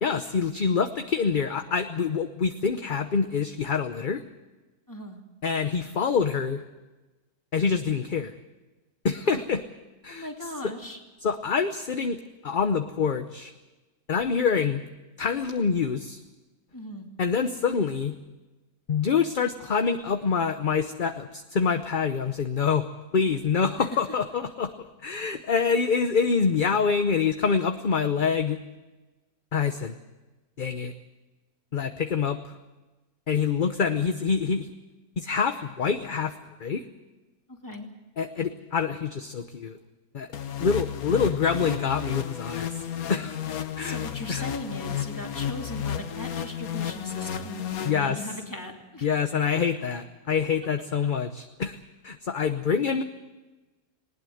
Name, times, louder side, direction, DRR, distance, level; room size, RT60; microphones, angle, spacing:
voice 1, 0.0-4.2 5.4-6.6 7.5-8.3 9.0-9.6 10.0-10.3 11.2-13.5 14.1-14.8 15.2-16.2 17.2-18.2 18.9-22.9 23.1-28.6 29.5-30.0 30.6-30.9 31.7-32.4 33.3-34.7 35.2-36.8 38.2-39.8 40.1-40.3 40.6-42.8 43.1-43.4 43.8-44.0 44.3-44.4 47.8-48.2 49.0-51.8 52.0-53.0, left 6 dB, 40° left, 8 dB, 0.9 m, -26 dB
voice 2, 4.9-5.2 9.2-9.4 10.1-11.0 16.7-17.1 23.8-23.9 37.5-37.9 43.8-49.1, left 1 dB, 15° left, 1 dB, 2.7 m, -38 dB
sound 1, 40.3-48.5, left 9 dB, 75° left, 1.5 m, -33 dB
20.0 x 19.5 x 7.8 m, 1.1 s
omnidirectional pair, 1.5 m